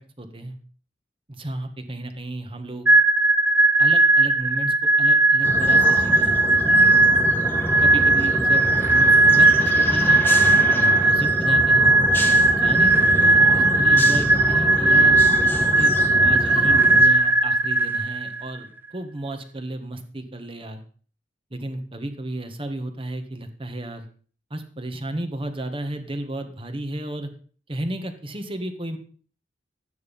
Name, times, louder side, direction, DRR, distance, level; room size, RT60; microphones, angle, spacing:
voice 1, 0.2-0.5 1.3-2.9 3.8-6.4 7.8-10.2 10.7-11.9 12.5-15.2 15.8-20.8 21.5-24.0 24.5-27.3 27.7-29.0, right 1 dB, 30° right, 7 dB, 1.6 m, -33 dB
sound 1, 2.9-18.5, right 2 dB, 10° right, 0.7 m, -17 dB
sound 2, 5.4-17.1, equal, 10° left, 1.4 m, -28 dB
12.0 x 9.4 x 5.4 m, 0.42 s
head